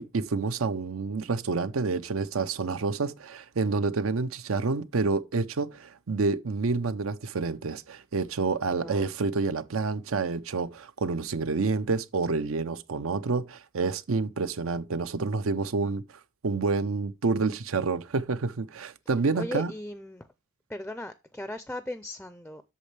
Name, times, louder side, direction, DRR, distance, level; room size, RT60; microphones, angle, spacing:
voice 1, 0.0-16.0 16.4-19.7, right 4 dB, 80° right, 0.6 m, -28 dB
voice 2, 8.7-9.1 19.4-20.3 20.7-22.6, left 1 dB, 5° left, 0.4 m, -37 dB
8.3 x 6.5 x 3.3 m
head